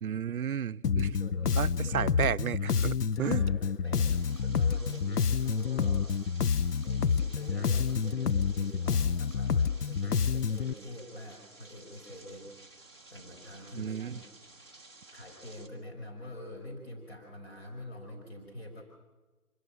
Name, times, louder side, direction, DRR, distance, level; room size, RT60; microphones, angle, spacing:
voice 1, 0.0-1.2 1.6-3.4 13.8-14.2, right 8 dB, 70° right, 0.6 m, -33 dB
Bass guitar, 0.8-10.7, left 6 dB, 85° left, 0.7 m, -28 dB
voice 2, 1.2-2.2 3.1-6.3 6.8-14.2 15.1-18.8, left 1 dB, 45° left, 5.2 m, -45 dB
sound 1, 4.1-15.7, right 2 dB, 15° left, 1.1 m, -54 dB
25.5 x 17.0 x 6.1 m
figure-of-eight pair, 175°, 45 cm